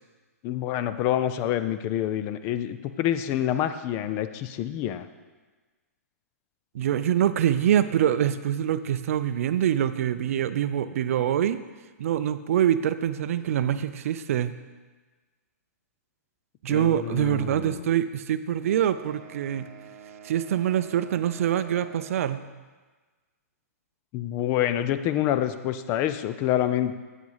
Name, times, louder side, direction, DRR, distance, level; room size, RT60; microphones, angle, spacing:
voice 1, 0.4-5.1 16.7-17.9 24.1-26.9, left 11 dB, 30° left, 11 dB, 0.4 m, -27 dB
voice 2, 6.7-11.6 12.0-14.6 16.6-19.7 20.2-22.4, right 10 dB, 60° right, 13 dB, 0.4 m, -25 dB
sound 1, 18.6-22.5, right 7 dB, 45° right, 0.9 m, -47 dB
8.1 x 4.8 x 5.5 m, 1.3 s
hypercardioid pair, 140°, 9 cm